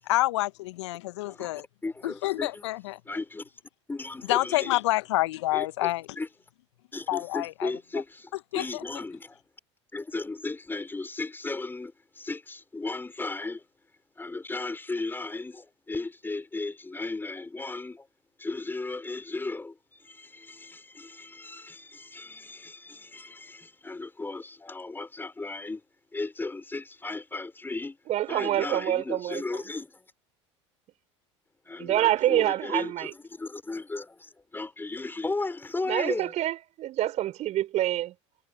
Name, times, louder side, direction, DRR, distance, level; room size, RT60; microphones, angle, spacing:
voice 1, 0.1-1.6 2.0-3.0 4.3-6.1 7.1-7.7 8.5-8.8, left 18 dB, 70° left, 1.4 m, -28 dB
voice 2, 1.8-2.7 3.1-3.5 3.9-4.7 5.5-6.3 6.9-9.4 9.9-13.6 14.2-18.1 18.4-25.8 26.1-28.0 28.3-30.0 31.6-36.3, left 3 dB, 15° left, 5.7 m, -35 dB
voice 3, 28.1-29.4 31.8-33.1 35.9-38.1, right 13 dB, 45° right, 5.6 m, -26 dB
hypercardioid pair, 75°, 15 cm